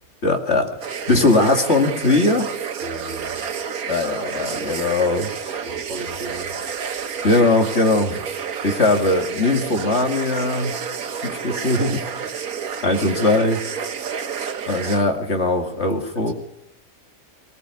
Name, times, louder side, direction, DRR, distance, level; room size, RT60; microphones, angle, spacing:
voice 1, 0.2-2.5 3.9-5.6 7.2-8.2 8.6-10.7 11.2-12.0 12.4-12.5 12.8-13.6 14.6-16.3, left 2 dB, 50° left, 2.6 m, -20 dB
sound 1, 0.8-15.0, right 7 dB, 90° right, 1.7 m, -30 dB
voice 2, 2.8-3.4 5.6-6.5 16.1-16.3, right 2 dB, 50° right, 2.9 m, -35 dB
20.0 x 20.0 x 9.7 m
omnidirectional pair, 1.5 m